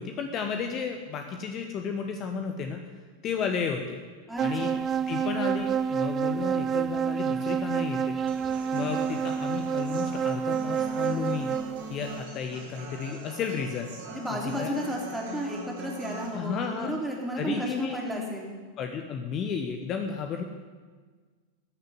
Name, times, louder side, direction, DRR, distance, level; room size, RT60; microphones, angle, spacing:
voice 1, 0.0-2.8 3.2-4.1 4.4-4.7 5.1-8.2 8.5-11.6 11.9-13.9 14.4-14.7 16.3-16.9 17.4-18.0 18.8-20.4, left 6 dB, 35° left, 5 dB, 0.9 m, -33 dB
voice 2, 4.3-4.8 14.1-18.5, equal, 5° right, -2 dB, 3.0 m, -33 dB
sound 1, 4.4-11.9, right 7 dB, 25° right, 0.3 m, -28 dB
Human voice / Acoustic guitar, 8.3-16.3, right 4 dB, 55° right, 2.9 m, -42 dB
14.5 x 6.7 x 9.4 m, 1.5 s
figure-of-eight pair, 90°, 0 cm